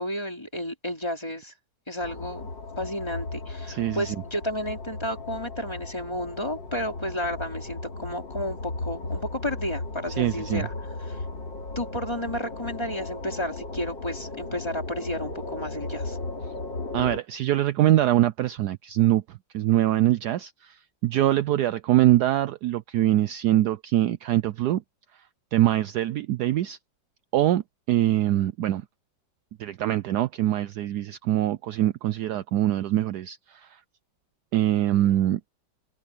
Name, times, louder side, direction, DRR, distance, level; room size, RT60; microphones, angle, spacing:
voice 1, 0.0-1.5 1.9-2.5 2.8-10.7 11.0-11.2 11.7-16.2, equal, 15° left, 3.4 m, -32 dB
sound 1, 2.0-17.2, left 2 dB, 80° left, 3.8 m, -36 dB
voice 2, 3.7-4.2 10.2-10.7 16.9-24.8 25.5-26.8 27.3-27.6 27.9-28.8 29.6-33.8 34.5-35.4, right 13 dB, 70° right, 1.1 m, -23 dB
omnidirectional pair, 2.0 m